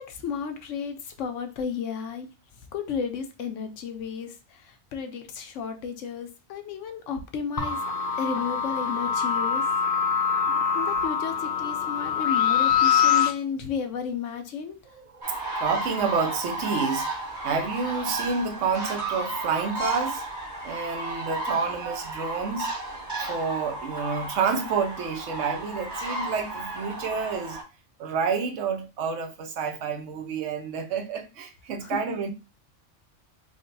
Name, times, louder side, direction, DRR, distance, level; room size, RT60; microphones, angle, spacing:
voice 1, 0.0-2.3 2.7-7.8 8.2-9.6 10.7-14.8 31.8-32.0, left 6 dB, 85° left, 1.0 m, -33 dB
sound 1, 7.6-13.3, left 7 dB, 60° left, 0.7 m, -24 dB
voice 2, 14.9-17.1 17.4-20.2 20.6-22.7 23.2-27.6 28.0-32.3, right 5 dB, 85° right, 1.0 m, -29 dB
sound 2, 15.2-27.6, right 2 dB, 40° right, 1.4 m, -33 dB
3.8 x 2.1 x 3.9 m
omnidirectional pair, 1.2 m